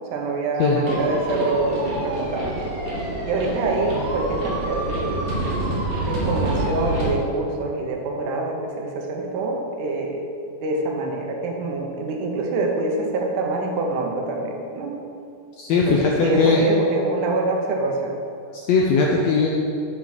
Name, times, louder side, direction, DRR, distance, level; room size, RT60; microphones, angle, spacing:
voice 1, 0.1-2.6 3.3-5.3 6.1-10.3 10.6-15.0 15.7-18.1, right 2 dB, 75° right, 1 dB, 2.3 m, -25 dB
sound 1, 0.8-7.1, right 1 dB, 45° right, 1.2 m, -27 dB
voice 2, 15.6-16.7 18.5-19.5, left 4 dB, 80° left, -1 dB, 1.6 m, -19 dB
7.4 x 5.8 x 6.0 m, 2.5 s
omnidirectional pair, 3.7 m